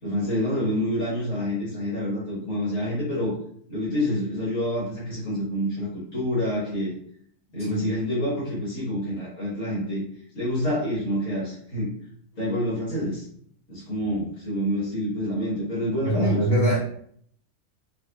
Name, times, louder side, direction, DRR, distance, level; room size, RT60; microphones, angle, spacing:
voice 1, 0.0-3.3 3.7-6.9 7.5-10.0 10.3-11.9 12.3-13.3 13.7-16.4, equal, 70° left, -8 dB, 1.8 m, -27 dB
voice 2, 16.0-16.8, right 1 dB, 50° left, -9 dB, 1.3 m, -22 dB
4.6 x 2.6 x 2.2 m, 0.63 s
omnidirectional pair, 1.4 m